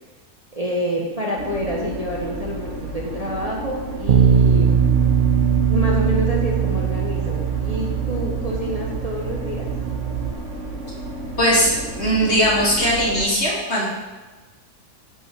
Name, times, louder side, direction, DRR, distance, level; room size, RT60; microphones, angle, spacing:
voice 1, 0.5-4.8 5.7-9.6, equal, 25° right, -3 dB, 1.6 m, -27 dB
sound 1, 1.4-13.2, right 2 dB, 50° right, 1.8 m, -32 dB
Bass guitar, 4.1-10.3, right 7 dB, 75° right, 0.4 m, -20 dB
voice 2, 11.4-13.8, equal, 40° left, -5 dB, 3.7 m, -19 dB
10.5 x 6.3 x 7.9 m, 1.2 s
omnidirectional pair, 1.7 m